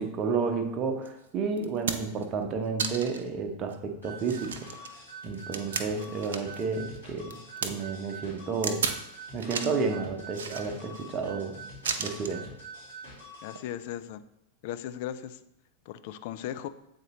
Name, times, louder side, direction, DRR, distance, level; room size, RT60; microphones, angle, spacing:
voice 1, 0.0-4.5 5.2-8.9 9.3-11.6 12.0-12.5, right 5 dB, 30° right, 5 dB, 0.8 m, -31 dB
sound 1, 1.1-1.2 1.6-2.2 2.8-3.3 3.7-3.8 4.2-6.6 6.9-7.7 8.6-9.0 9.4-9.8 10.3-11.0 11.8-12.4 13.5-13.6, right 6 dB, 65° right, 0.5 m, -34 dB
sound 2, 4.0-13.6, right 2 dB, 85° left, 2.3 m, -45 dB
voice 2, 13.4-14.2 14.6-15.4 15.9-16.7, left 11 dB, 50° left, 11 dB, 0.4 m, -37 dB
8.0 x 3.9 x 3.0 m, 0.80 s
figure-of-eight pair, 90°, 0 cm